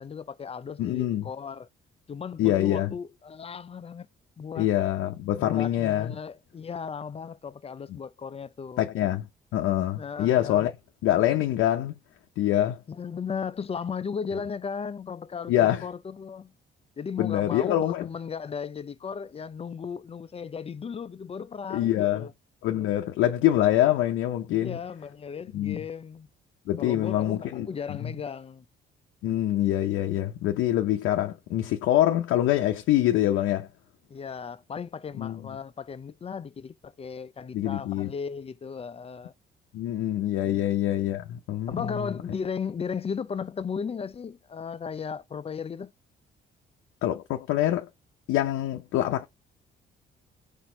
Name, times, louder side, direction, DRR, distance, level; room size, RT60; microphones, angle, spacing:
voice 1, 0.0-1.7 2.1-4.1 4.4-4.7 5.3-8.8 10.0-10.7 12.9-16.5 17.0-22.3 24.5-26.3 26.8-28.7 34.1-39.3 40.4-40.6 41.7-45.9, left 6 dB, 30° left, 0.5 m, -36 dB
voice 2, 0.8-1.3 2.4-2.9 4.6-6.1 8.8-9.3 9.5-10.7 11.0-11.9 12.4-12.8 15.5-15.8 17.2-18.1 21.7-22.3 22.6-24.8 25.5-25.8 26.7-28.1 29.2-33.7 35.2-35.4 37.5-38.1 39.7-42.1 47.0-47.9 48.3-49.3, left 13 dB, 90° left, 0.6 m, -25 dB
4.2 x 2.6 x 4.3 m
cardioid pair, 90°, 20 cm